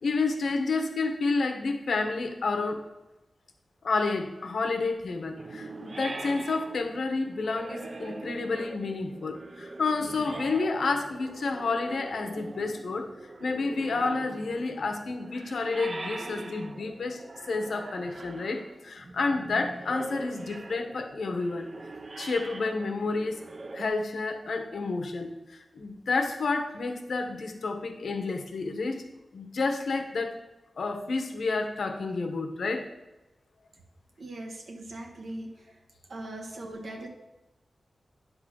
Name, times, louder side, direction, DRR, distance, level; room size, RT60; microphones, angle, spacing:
voice 1, 0.0-2.8 3.8-13.1 13.4-21.7 22.2-23.4 23.7-29.1 29.3-30.4 30.8-32.9, left 3 dB, 85° left, 4 dB, 1.0 m, -30 dB
sound 1, 5.4-23.9, right 2 dB, 35° right, 0.4 m, -43 dB
voice 2, 34.2-35.7 36.1-37.1, right 1 dB, 75° right, 1 dB, 1.2 m, -40 dB
9.7 x 3.9 x 6.3 m, 1.0 s
wide cardioid pair, 145°, 0 cm